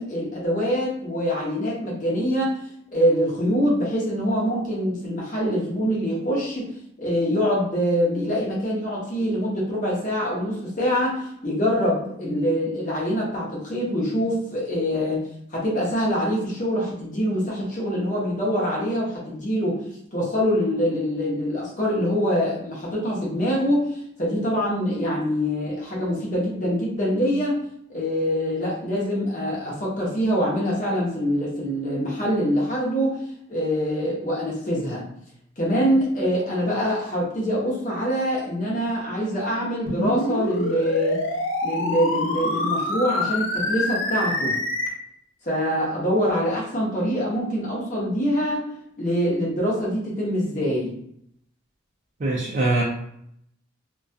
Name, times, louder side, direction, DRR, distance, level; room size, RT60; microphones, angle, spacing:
voice 1, 0.0-2.6 2.9-15.2 15.5-19.8 20.1-27.5 27.9-33.2 33.5-35.1 35.6-41.2 41.6-44.6 45.4-48.6 49.0-50.9, equal, 40° left, -4 dB, 0.7 m, -24 dB
sound 1, 39.9-44.9, left 1 dB, 75° left, 0.5 m, -26 dB
voice 2, 52.2-52.8, right 2 dB, 40° right, -5 dB, 0.4 m, -22 dB
2.3 x 2.2 x 2.5 m, 0.71 s
head